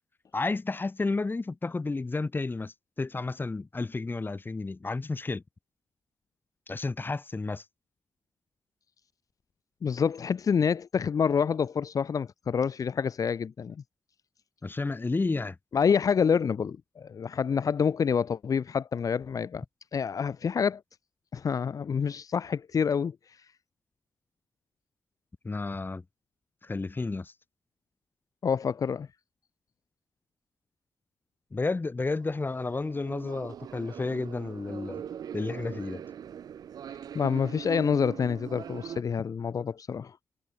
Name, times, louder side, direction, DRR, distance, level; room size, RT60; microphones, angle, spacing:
voice 1, 0.3-5.4 6.7-7.6 14.6-15.6 25.4-26.0 26.6-27.3 31.5-35.0 35.3-36.0, left 3 dB, 30° left, 4.4 m, -31 dB
voice 2, 9.8-13.8 15.7-19.6 19.9-20.8 21.3-23.1 28.4-29.1 37.1-40.2, left 6 dB, 65° left, 1.7 m, -27 dB
sound 1, 32.2-39.0, right 9 dB, 85° right, 7.9 m, -41 dB
cardioid pair, 70°, 6 cm